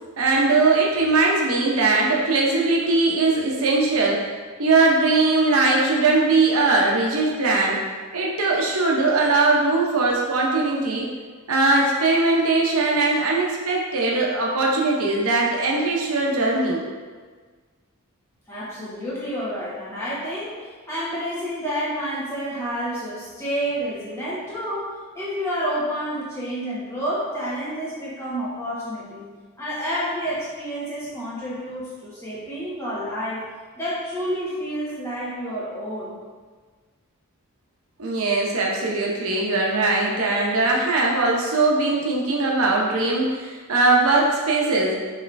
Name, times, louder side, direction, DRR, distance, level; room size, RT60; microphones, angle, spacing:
voice 1, 0.2-4.2 4.6-7.8 8.1-11.1 11.5-16.8 38.0-45.0, right 3 dB, 70° right, -2 dB, 0.8 m, -20 dB
voice 2, 18.5-29.3 29.6-33.4 33.7-36.2, equal, 10° left, -9 dB, 1.2 m, -29 dB
6.4 x 3.1 x 2.6 m, 1.5 s
head